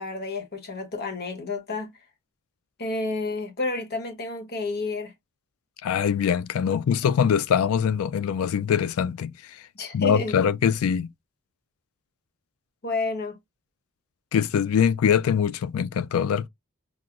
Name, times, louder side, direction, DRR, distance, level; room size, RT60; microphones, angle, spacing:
voice 1, 0.0-1.9 2.8-5.1 9.7-10.3 12.8-13.4, left 3 dB, 45° left, 1.0 m, -30 dB
voice 2, 5.8-9.3 9.9-11.1 14.3-16.5, left 7 dB, 70° left, 0.3 m, -23 dB
5.9 x 2.1 x 2.4 m
head